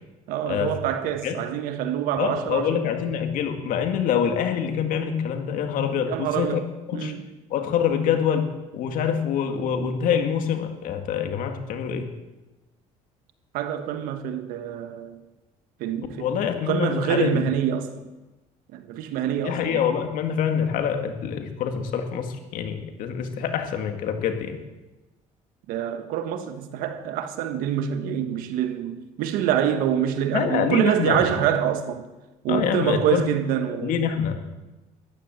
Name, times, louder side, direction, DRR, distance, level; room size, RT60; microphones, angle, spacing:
voice 1, 0.3-2.8 6.1-7.2 13.5-15.2 15.8-16.3 16.7-17.9 18.7-19.8 25.7-32.1 32.4-34.1, right 9 dB, 85° right, 1.4 m, -26 dB
voice 2, 2.2-6.6 6.9-7.1 7.5-8.5 8.7-12.1 16.2-17.4 19.4-24.6 30.3-31.3 32.5-33.2 33.8-34.4, left 8 dB, 70° left, 2.0 m, -25 dB
14.5 x 10.5 x 7.7 m
cardioid pair, 100°, 14 cm